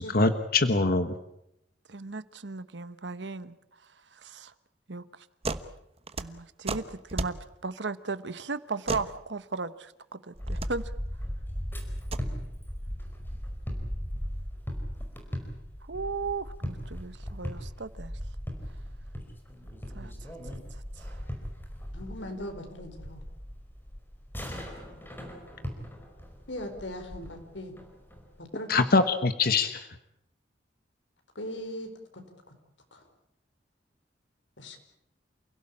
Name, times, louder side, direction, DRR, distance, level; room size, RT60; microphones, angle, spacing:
voice 1, 0.1-1.1 28.7-29.8, left 3 dB, 55° left, 9 dB, 1.2 m, -23 dB
voice 2, 1.9-3.6 4.2-4.5 4.9-5.1 6.2-7.4 7.6-10.9 15.9-18.1 19.9-20.3 21.0-21.2, right 4 dB, 70° right, 14 dB, 1.2 m, -36 dB
sound 1, 5.4-5.7 6.0-7.4 8.9-9.1 10.4-10.7 11.9-12.3, right 3 dB, 35° right, 1.2 m, -33 dB
sound 2, 10.3-28.4, equal, 10° left, 5.0 m, -38 dB
voice 3, 21.9-23.2 26.5-27.7 28.4-28.7 31.3-32.2 32.9-33.0 34.6-34.8, left 1 dB, 90° left, 6 dB, 4.5 m, -39 dB
29.0 x 17.0 x 8.7 m, 0.81 s
head